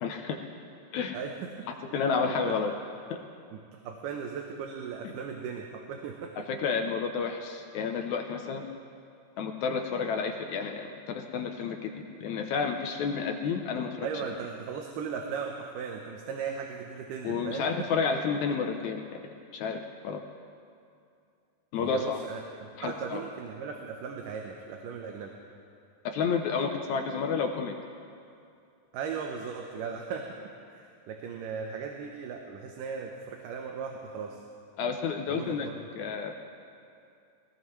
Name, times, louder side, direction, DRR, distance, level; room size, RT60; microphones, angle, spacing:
voice 1, 0.0-0.4 0.9-1.2 1.9-2.7 3.1-3.2 5.0-5.1 6.4-8.7 9.4-14.2 17.2-19.2 19.5-19.8 20.0-20.2 21.7-22.2 22.8-23.2 26.1-27.7 34.8-35.7 36.0-36.4, left 5 dB, 70° left, 4 dB, 1.9 m, -30 dB
voice 2, 1.1-1.5 1.9-2.6 3.5-3.6 3.8-6.3 14.0-17.9 21.8-25.4 28.9-30.4 30.7-34.4 35.3-35.8, right 6 dB, 80° right, 2 dB, 2.5 m, -37 dB
22.5 x 17.5 x 3.2 m, 2.4 s
omnidirectional pair, 3.8 m